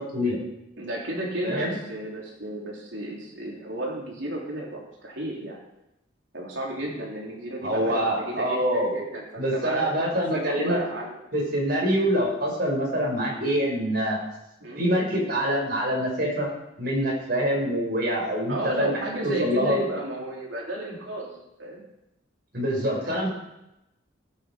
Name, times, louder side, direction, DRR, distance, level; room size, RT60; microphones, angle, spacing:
voice 1, 0.8-5.6 6.3-11.2 14.6-14.9 18.5-21.8 23.0-23.3, right 1 dB, 75° right, -2 dB, 3.6 m, -33 dB
voice 2, 1.4-1.8 7.6-8.9 9.4-10.8 11.3-14.2 14.8-16.5 16.8-18.9 19.2-19.8 22.5-23.3, equal, 55° right, -2 dB, 5.8 m, -25 dB
17.0 x 9.4 x 5.2 m, 0.88 s
head